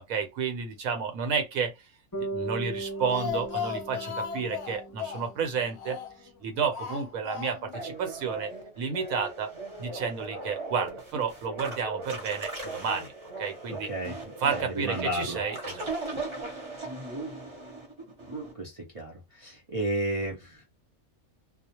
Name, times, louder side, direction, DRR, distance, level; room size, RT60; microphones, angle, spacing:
voice 1, 0.1-1.7 2.2-6.0 6.4-8.5 8.8-9.5 9.8-13.1 13.4-13.9 14.4-15.9, right 6 dB, 80° right, 1.1 m, -31 dB
Bass guitar, 2.1-6.2, right 3 dB, 15° left, 1.1 m, -38 dB
Speech, 2.8-6.3 6.7-7.9 8.1-8.2 8.5-8.6, left 7 dB, 60° left, 0.8 m, -36 dB
sound 1, 7.7-18.5, right 2 dB, 25° right, 0.7 m, -38 dB
voice 2, 13.7-14.1 14.5-15.4 18.6-20.6, right 1 dB, 60° right, 0.3 m, -32 dB
2.4 x 2.0 x 2.8 m
omnidirectional pair, 1.5 m